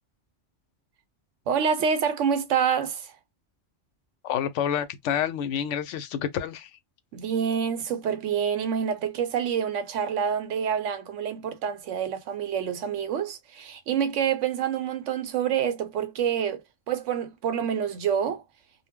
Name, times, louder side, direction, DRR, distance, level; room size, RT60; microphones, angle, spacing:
voice 1, 1.5-3.1 7.1-16.6 16.9-18.4, right 7 dB, 85° right, 1.0 m, -27 dB
voice 2, 4.2-6.7, left 9 dB, 80° left, 0.9 m, -28 dB
2.3 x 2.1 x 3.5 m
omnidirectional pair, 1.2 m